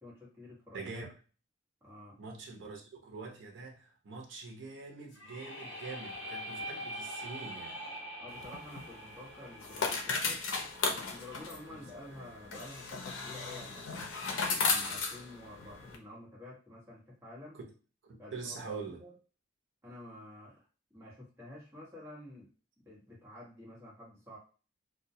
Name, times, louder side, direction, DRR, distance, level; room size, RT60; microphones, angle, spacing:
voice 1, 0.0-0.8 1.8-2.2 8.2-10.4 10.9-14.1 14.5-17.6 18.2-19.1 19.8-20.6 20.9-22.5 22.8-24.4, left 1 dB, 10° right, 1.0 m, -50 dB
voice 2, 0.7-1.1 2.2-7.8 11.7-12.3 17.5-17.7 18.0-19.0, right 4 dB, 75° right, 0.6 m, -44 dB
sound 1, 5.1-11.0, equal, 60° left, 0.9 m, -44 dB
sound 2, 8.3-16.0, left 4 dB, 90° left, 0.5 m, -36 dB
2.1 x 2.1 x 2.6 m
head